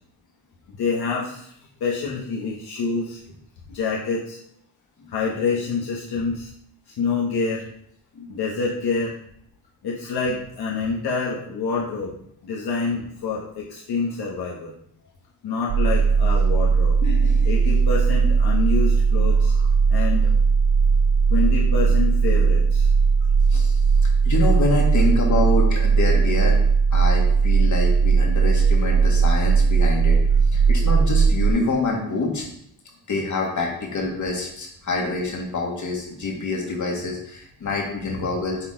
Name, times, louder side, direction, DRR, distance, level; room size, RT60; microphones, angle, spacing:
voice 1, 0.8-1.5 1.8-3.2 3.7-4.4 5.1-6.5 7.0-7.7 8.3-9.1 9.8-12.1 12.4-14.7 15.4-17.0 17.4-19.5 19.9-20.3 21.3-22.9 38.0-38.2, left 4 dB, 70° left, -3 dB, 1.3 m, -27 dB
sound 1, 15.7-31.5, right 5 dB, 55° right, 0.6 m, -18 dB
voice 2, 17.0-17.5 23.5-23.8 24.2-26.6 26.9-30.2 30.5-32.5 33.1-38.6, left 3 dB, 45° left, 0 dB, 2.1 m, -26 dB
8.6 x 4.1 x 3.9 m, 0.70 s
cardioid pair, 110°, 40 cm